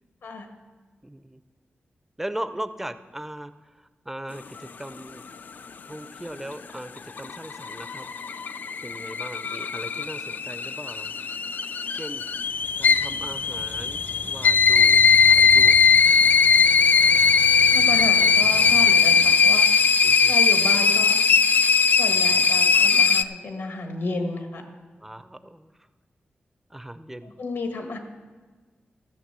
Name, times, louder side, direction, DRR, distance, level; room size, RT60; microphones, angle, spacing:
voice 1, 1.0-1.4 2.2-3.5 4.1-5.3 5.9-6.9 7.2-8.1 8.8-11.1 11.9-12.2 12.8-15.8 20.0-20.3 25.0-25.7 26.7-27.3, right 1 dB, 10° right, 12 dB, 0.5 m, -38 dB
sound 1, 7.0-23.2, left 5 dB, 50° left, 0.3 m, -19 dB
Bicycle, 12.3-19.8, right 3 dB, 70° right, 0.8 m, -41 dB
voice 2, 17.7-19.6 20.3-21.2 21.9-24.6 27.2-28.0, left 3 dB, 75° left, 4 dB, 1.5 m, -32 dB
14.0 x 6.5 x 6.8 m, 1.4 s
wide cardioid pair, 155°, 4 cm